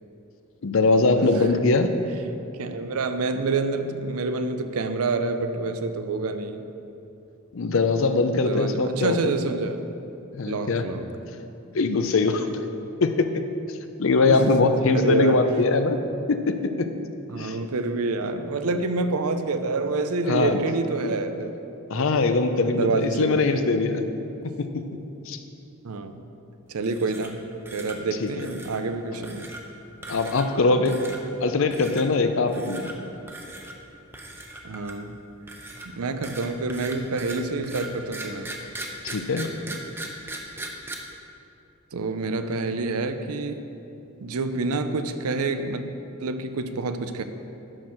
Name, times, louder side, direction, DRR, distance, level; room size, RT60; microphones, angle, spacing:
voice 1, 0.6-1.9 7.5-9.3 10.3-10.8 11.7-12.5 13.0-13.4 13.7-16.0 16.3-16.9 17.4-17.6 20.3-20.6 21.9-24.0 24.4-24.8 25.3-25.4 28.2-28.5 30.1-31.0 31.4-32.9 39.0-39.6, left 3 dB, 65° left, 8 dB, 0.6 m, -22 dB
voice 2, 1.2-1.9 2.5-6.7 8.3-9.8 10.5-11.1 14.3-15.4 17.3-21.5 21.9-22.3 22.7-23.7 25.8-26.2 26.7-27.4 27.7-29.5 34.6-35.2 35.9-38.5 41.9-43.7 44.2-45.8 46.2-47.2, right 3 dB, 85° right, 9 dB, 0.6 m, -28 dB
sound 1, 26.8-27.4 27.7-28.0 28.4-28.8 29.2-29.6 30.0-30.6 30.9-31.2 31.7-32.0 32.5-32.9 33.3-33.7 34.1-35.1 35.5-40.9, right 2 dB, 10° right, 0.7 m, -38 dB
11.0 x 4.5 x 6.3 m, 2.8 s
head